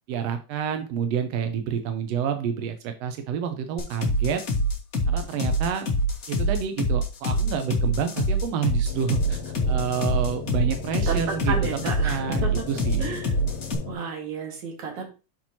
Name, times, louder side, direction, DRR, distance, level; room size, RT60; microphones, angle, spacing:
voice 1, 0.1-4.4 5.1-5.9 6.3-11.6 12.0-13.2, right 7 dB, 80° right, 7 dB, 1.5 m, -28 dB
sound 1, 3.8-13.7, equal, 60° left, 0.8 m, -25 dB
sound 2, 8.9-13.9, left 6 dB, 80° left, 4.2 m, -37 dB
voice 2, 11.4-12.7 13.0-13.4 13.9-15.1, right 5 dB, 65° right, 0 dB, 3.2 m, -32 dB
10.5 x 4.4 x 2.9 m, 0.31 s
omnidirectional pair, 3.8 m